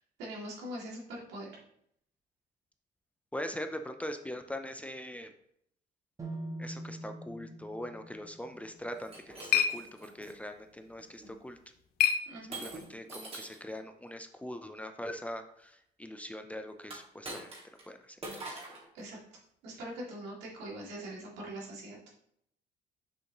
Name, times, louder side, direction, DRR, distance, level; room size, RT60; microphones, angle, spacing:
voice 1, 0.2-1.5 12.3-12.6 18.9-19.2 19.6-22.0, right 1 dB, 85° right, -4 dB, 2.3 m, -42 dB
voice 2, 3.3-5.3 6.6-11.6 12.6-17.5 17.9-18.2 18.5-18.6, left 1 dB, 10° left, 6 dB, 0.5 m, -42 dB
sound 1, 6.2-10.1, right 1 dB, 20° right, 1.2 m, -45 dB
sound 2, 8.8-13.0, left 9 dB, 65° left, 0.6 m, -34 dB
Shatter, 9.0-10.3 11.0-11.3 12.5-13.7 16.8-17.9 18.2-18.9, right 2 dB, 35° right, 1.9 m, -44 dB
6.5 x 5.4 x 3.0 m, 0.71 s
cardioid pair, 110°, 17 cm